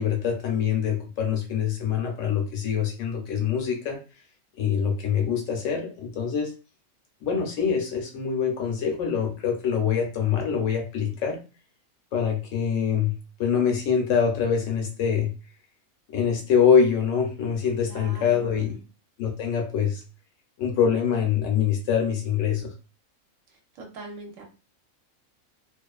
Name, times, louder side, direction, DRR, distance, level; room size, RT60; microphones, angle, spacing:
voice 1, 0.0-4.0 4.6-6.5 7.2-11.4 12.1-15.3 16.1-18.8 19.2-20.0 20.6-22.7, left 7 dB, 70° left, 2 dB, 0.9 m, -24 dB
voice 2, 17.9-18.8 23.8-24.4, right 3 dB, 70° right, 2 dB, 0.9 m, -42 dB
2.4 x 2.3 x 2.3 m, 0.33 s
omnidirectional pair, 1.5 m